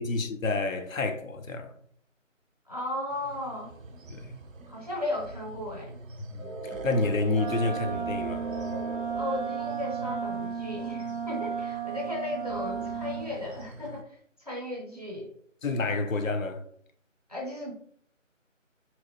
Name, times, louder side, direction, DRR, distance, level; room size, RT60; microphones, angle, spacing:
voice 1, 0.0-1.7 4.1-4.4 6.3-8.5 15.6-16.6, left 3 dB, 90° left, 0.6 m, -29 dB
voice 2, 2.7-3.7 4.7-6.0 9.1-14.2 14.4-15.3 17.3-17.7, left 1 dB, 30° right, 0.5 m, -35 dB
sound 1, 3.1-14.0, right 2 dB, 85° right, 0.5 m, -42 dB
Wind instrument woodwind instrument, 7.3-13.3, right 6 dB, 45° left, 0.5 m, -34 dB
2.9 x 2.1 x 2.2 m
figure-of-eight pair, 160°, 39 cm